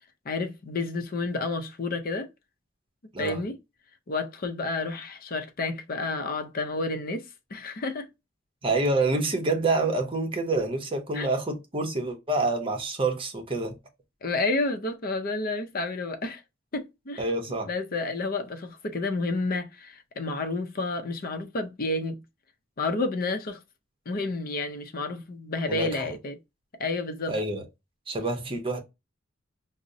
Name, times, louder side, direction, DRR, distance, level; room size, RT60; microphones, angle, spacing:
voice 1, 0.3-2.3 3.2-3.6 4.1-8.1 11.1-11.3 14.2-16.4 16.7-17.2 17.7-22.2 22.8-23.6 24.1-26.4 26.8-27.4, left 3 dB, 50° left, 0.6 m, -30 dB
voice 2, 8.6-13.7 17.2-17.7 25.7-26.1 27.3-27.6 28.1-28.8, right 2 dB, 25° right, 0.7 m, -27 dB
4.9 x 2.0 x 2.6 m
head